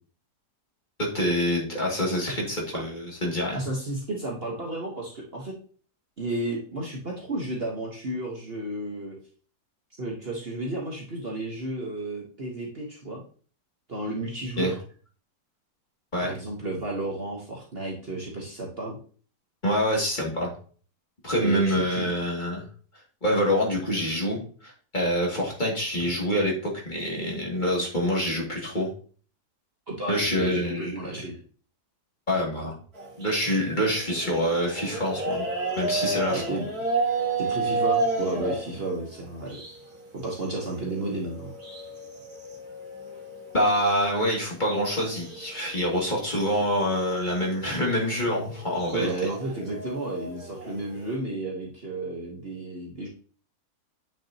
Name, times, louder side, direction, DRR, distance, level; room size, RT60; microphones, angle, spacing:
voice 1, 1.0-3.6 14.6-14.7 16.1-16.3 19.6-20.5 21.2-22.6 23.2-28.9 30.1-31.1 32.3-32.7 33.2-35.5 35.8-36.6 43.5-49.1, equal, 30° left, -3 dB, 2.5 m, -26 dB
voice 2, 3.5-5.5 6.2-9.2 10.0-13.2 13.9-14.7 16.2-19.0 21.4-22.1 29.9-31.4 36.3-36.7 37.4-39.6 40.1-41.5 48.9-53.1, right 2 dB, 40° right, -2 dB, 1.4 m, -32 dB
sound 1, 32.9-40.0 40.3-44.0 44.4-44.5 44.7-45.5 45.8-51.1, right 3 dB, 65° right, 2.3 m, -32 dB
9.0 x 6.2 x 2.9 m, 0.42 s
omnidirectional pair, 1.7 m